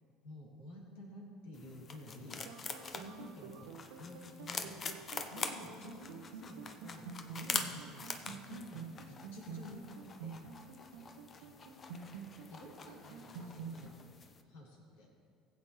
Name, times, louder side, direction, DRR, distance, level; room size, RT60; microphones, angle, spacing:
voice 1, 0.2-2.4 2.9-3.7 4.0-4.7 5.3-7.0 7.3-9.9 10.2-10.4 12.5-14.0 14.4-15.1, left 1 dB, 65° left, -3 dB, 3.0 m, -51 dB
sound 1, 1.5-14.4, left 5 dB, 35° left, 0.9 m, -45 dB
sound 2, 2.4-13.9, right 5 dB, 70° right, 0.9 m, -48 dB
19.5 x 8.3 x 3.3 m, 2.3 s
figure-of-eight pair, 60°, 0 cm